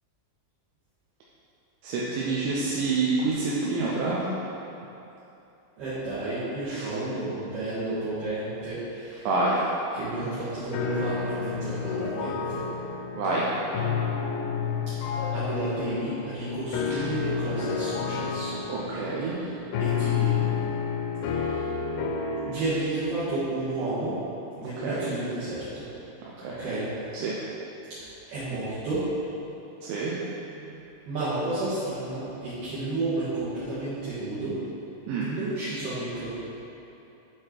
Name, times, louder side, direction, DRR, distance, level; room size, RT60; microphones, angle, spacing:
voice 1, 1.8-4.3 6.7-6.9 9.2-9.6 13.2-13.5 16.9-17.0 18.7-19.4 24.6-25.2 26.4-26.6 27.1-27.4 29.8-30.2 35.1-35.3, right 3 dB, 85° right, -6 dB, 3.0 m, -28 dB
voice 2, 5.8-9.3 9.9-12.6 14.9-18.6 19.4-19.5 19.8-20.5 21.3-21.7 22.5-24.1 24.6-25.9 26.6-26.9 28.3-29.0 30.5-34.5 35.2-36.4, right 2 dB, 65° right, -15 dB, 3.3 m, -32 dB
sound 1, 10.7-22.7, left 6 dB, 80° left, 2.5 m, -30 dB
7.7 x 4.8 x 4.5 m, 2.9 s
omnidirectional pair, 5.3 m